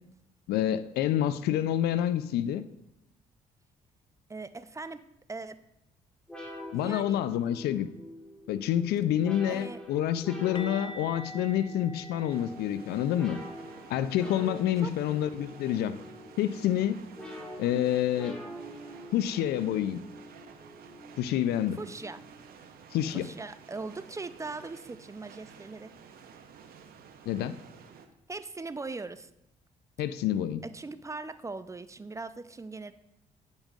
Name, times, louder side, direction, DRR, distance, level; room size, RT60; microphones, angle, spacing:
voice 1, 0.5-2.6 6.7-7.9 8.5-13.4 13.9-15.9 16.4-17.0 17.6-18.4 19.1-20.0 21.2-21.8 22.9-23.3 27.3-27.5 30.0-30.6, left 11 dB, 75° left, 13 dB, 0.4 m, -28 dB
voice 2, 4.3-5.0 5.3-5.6 6.7-7.2 9.5-9.8 14.8-14.9 21.8-22.2 23.1-25.9 28.3-29.3 30.6-32.9, right 3 dB, 20° right, 12 dB, 0.4 m, -40 dB
sound 1, 6.3-22.5, left 1 dB, 5° left, 1.7 m, -45 dB
sound 2, 10.6-16.3 16.6-16.8 17.2-17.3 20.6-20.7, equal, 30° left, 0.7 m, -48 dB
sound 3, 12.3-28.1, right 7 dB, 65° right, 0.7 m, -52 dB
8.8 x 5.2 x 2.4 m, 0.84 s
supercardioid pair, 55°, 17 cm